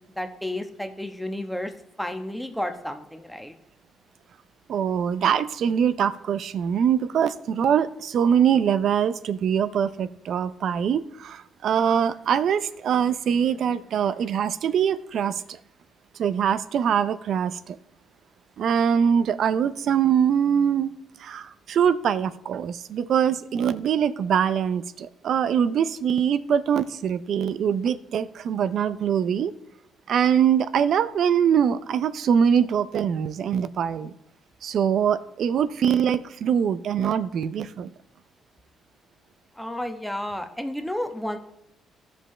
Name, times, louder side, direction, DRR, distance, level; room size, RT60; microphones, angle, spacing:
voice 1, 0.1-1.7 2.0-3.5 39.6-41.4, left 1 dB, 5° left, 6 dB, 1.1 m, -31 dB
voice 2, 4.7-15.4 16.2-17.8 18.6-20.9 21.2-29.5 30.1-34.1 34.6-37.9, right 8 dB, 65° right, 14 dB, 0.5 m, -23 dB
15.0 x 5.3 x 3.3 m, 0.80 s
cardioid pair, 90°, 0 cm